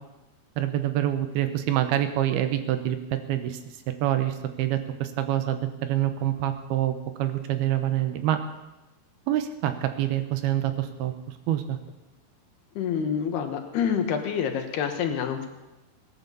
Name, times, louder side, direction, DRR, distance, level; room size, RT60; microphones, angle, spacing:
voice 1, 0.6-3.6 4.0-8.4 9.3-11.1 11.5-11.8, right 12 dB, 80° right, 9 dB, 2.9 m, -26 dB
voice 2, 12.8-15.5, left 7 dB, 85° left, 5 dB, 3.4 m, -27 dB
18.0 x 10.5 x 6.9 m, 1.0 s
omnidirectional pair, 4.6 m